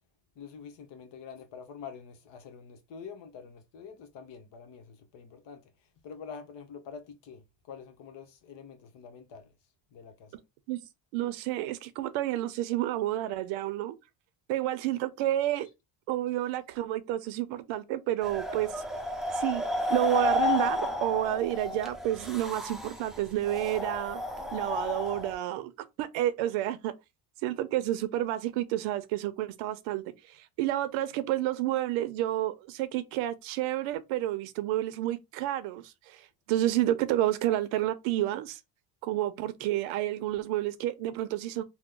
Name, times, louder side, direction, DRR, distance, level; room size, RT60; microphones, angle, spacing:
voice 1, 0.4-5.6 6.0-9.5 9.9-10.3, left 6 dB, 60° left, 1.0 m, -46 dB
voice 2, 11.1-14.0 14.5-15.7 16.1-18.8 19.3-24.2 24.5-25.7 26.0-26.9 27.4-38.6 39.0-41.6, right 14 dB, 85° right, 0.6 m, -30 dB
sound 1, 18.2-25.3, left 2 dB, ahead, 0.5 m, -32 dB
2.9 x 2.1 x 3.7 m
cardioid pair, 110°, 47 cm